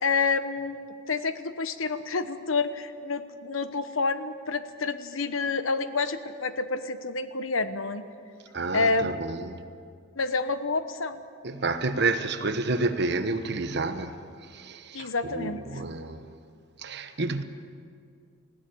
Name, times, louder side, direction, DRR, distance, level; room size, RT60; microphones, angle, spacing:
voice 1, 0.0-8.0 8.7-9.2 10.2-11.2 14.9-15.8, left 4 dB, 90° left, 1.1 m, -28 dB
voice 2, 8.5-9.6 11.4-16.3 16.8-17.4, right 3 dB, 55° right, 1.1 m, -30 dB
20.0 x 16.0 x 8.5 m
head